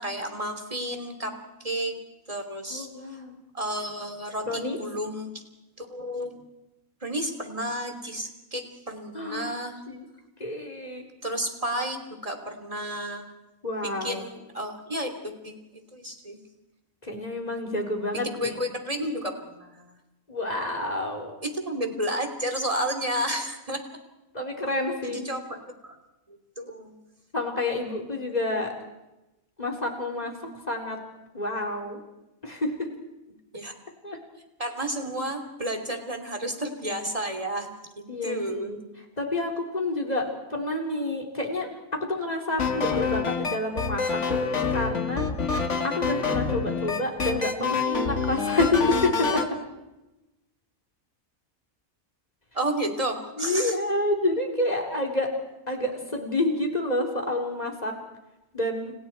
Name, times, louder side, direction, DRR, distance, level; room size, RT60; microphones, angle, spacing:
voice 1, 0.0-1.3 1.6-2.0 2.3-2.9 3.5-5.4 5.8-6.4 7.0-9.8 11.2-13.3 13.8-16.4 18.1-19.9 21.4-23.8 25.0-25.9 26.3-27.0 33.5-33.7 34.6-37.7 38.0-38.8 52.5-53.7, right 1 dB, 25° right, 5 dB, 3.2 m, -32 dB
voice 2, 2.7-3.3 4.5-4.8 9.1-9.5 9.9-10.0 10.4-11.0 13.6-14.2 17.0-18.5 20.3-21.3 24.3-25.2 27.3-28.7 29.6-30.3 30.7-31.0 31.3-32.0 32.4-32.9 34.0-34.2 38.1-38.8 39.2-45.3 45.8-48.8 49.2-49.4 53.4-55.3 55.7-57.9 58.5-58.9, left 2 dB, 30° left, 1 dB, 4.2 m, -29 dB
sound 1, 42.6-49.5, left 5 dB, 55° left, 2.1 m, -27 dB
30.0 x 30.0 x 4.6 m, 1.0 s
omnidirectional pair, 1.5 m